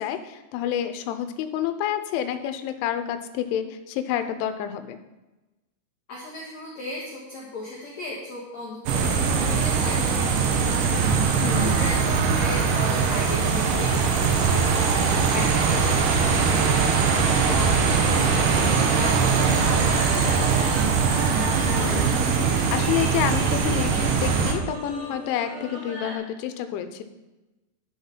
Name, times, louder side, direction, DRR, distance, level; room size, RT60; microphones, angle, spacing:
voice 1, 0.0-5.0 11.4-11.7 21.7-22.2 22.6-27.0, left 10 dB, 90° left, 9 dB, 3.1 m, -29 dB
voice 2, 6.1-12.0 12.4-21.1, left 2 dB, 60° left, -4 dB, 1.8 m, -37 dB
sound 1, 8.9-24.5, right 5 dB, 90° right, 1.8 m, -21 dB
sound 2, 17.1-26.2, equal, 40° right, 3.3 m, -37 dB
11.0 x 6.3 x 5.4 m, 1.1 s
omnidirectional pair, 5.4 m